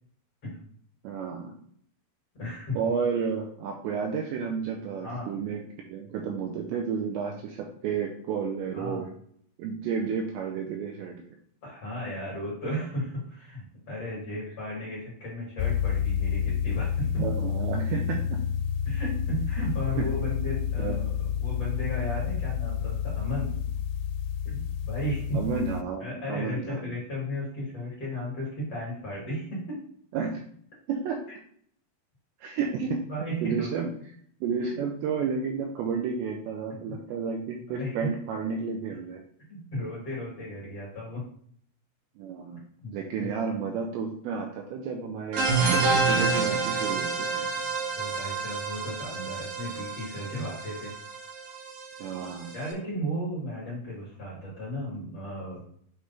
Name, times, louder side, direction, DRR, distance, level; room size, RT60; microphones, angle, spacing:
voice 1, 1.0-1.5 2.7-5.6 5.9-9.1 9.6-11.2 17.2-18.4 20.0-20.1 20.8-21.1 25.3-26.9 30.1-30.4 30.9-31.2 32.4-32.8 33.4-33.9 34.4-39.2 42.2-42.7 42.9-45.5 46.1-47.5 52.0-52.5, right 6 dB, 85° right, 1 dB, 2.6 m, -31 dB
voice 2, 2.4-2.8 5.0-5.3 8.7-9.0 11.6-17.3 18.8-21.1 21.4-23.5 24.4-25.4 26.0-29.8 32.8-33.7 34.6-34.7 36.9-37.0 37.7-38.1 39.5-41.2 42.8-42.9 43.2-43.4 48.0-50.9 52.5-55.6, equal, 45° left, -6 dB, 2.3 m, -34 dB
sound 1, 15.6-25.8, left 8 dB, 85° left, 3.1 m, -29 dB
sound 2, 45.3-52.7, right 4 dB, 65° right, 2.9 m, -28 dB
8.0 x 3.1 x 4.1 m, 0.63 s
omnidirectional pair, 5.6 m